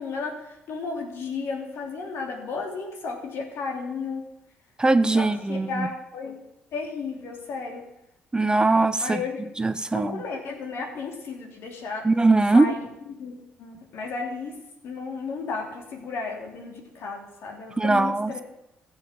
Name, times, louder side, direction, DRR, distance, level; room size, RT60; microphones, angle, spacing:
voice 1, 0.0-4.2 5.2-6.4 6.7-7.8 9.0-9.5 9.9-12.0 12.5-12.9 13.2-14.5 14.8-18.4, left 4 dB, 65° left, 2 dB, 3.1 m, -33 dB
voice 2, 4.8-5.9 8.3-9.2 9.6-10.2 12.0-12.7 17.8-18.4, right 3 dB, 20° right, 12 dB, 0.7 m, -21 dB
15.0 x 7.2 x 7.4 m, 0.87 s
hypercardioid pair, 55°, 5 cm